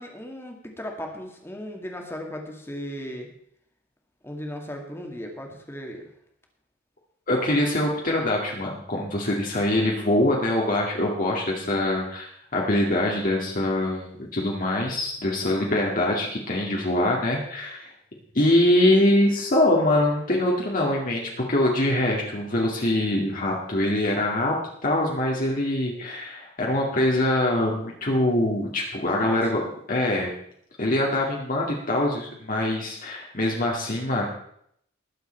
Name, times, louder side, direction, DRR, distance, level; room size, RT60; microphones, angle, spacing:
voice 1, 0.0-3.3 4.2-6.1 29.2-29.6, equal, 10° left, 2 dB, 2.2 m, -36 dB
voice 2, 7.3-17.9 18.3-24.6 24.8-29.6 29.9-30.3 30.8-34.3, left 1 dB, 45° left, -2 dB, 2.1 m, -23 dB
20.0 x 7.8 x 4.5 m, 0.70 s
head